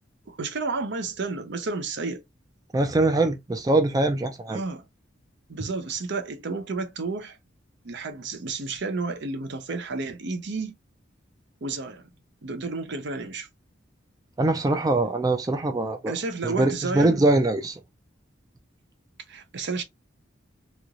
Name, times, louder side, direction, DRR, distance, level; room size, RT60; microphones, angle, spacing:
voice 1, 0.3-2.2 4.5-4.8 5.5-7.4 7.8-10.7 11.6-12.1 12.4-13.5 16.1-17.2 19.3-19.8, right 3 dB, 65° right, 0.6 m, -31 dB
voice 2, 2.7-4.6 14.4-16.2 16.4-17.8, right 2 dB, 20° right, 0.4 m, -23 dB
3.1 x 2.9 x 2.4 m
head